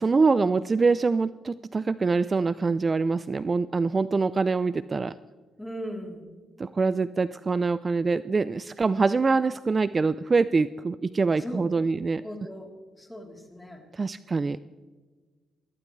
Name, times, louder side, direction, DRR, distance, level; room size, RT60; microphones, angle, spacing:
voice 1, 0.0-5.1 6.6-12.2 13.9-14.6, right 4 dB, 30° right, 15 dB, 0.4 m, -24 dB
voice 2, 5.6-6.3 11.4-11.6 12.1-12.7 13.0-13.8, equal, 10° left, 1 dB, 3.4 m, -38 dB
21.5 x 15.5 x 3.2 m, 1.4 s
cardioid pair, 90°, 0 cm